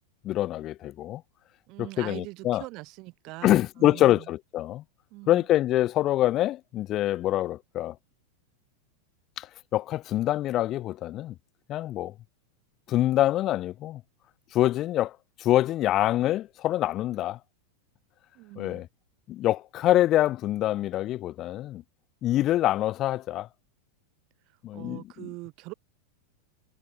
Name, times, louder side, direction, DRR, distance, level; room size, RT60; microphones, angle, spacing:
voice 1, 0.2-1.2 1.8-2.6 3.4-4.8 5.3-8.0 9.4-11.3 11.7-12.1 12.9-14.0 14.5-17.4 18.6-18.9 19.3-21.8 22.2-23.5 24.6-25.3, left 14 dB, 35° left, 1.9 m, -25 dB
voice 2, 1.7-4.3 5.1-5.5 18.3-18.8 24.5-25.7, right 23 dB, 40° right, 7.8 m, -42 dB
figure-of-eight pair, 90°, 0 cm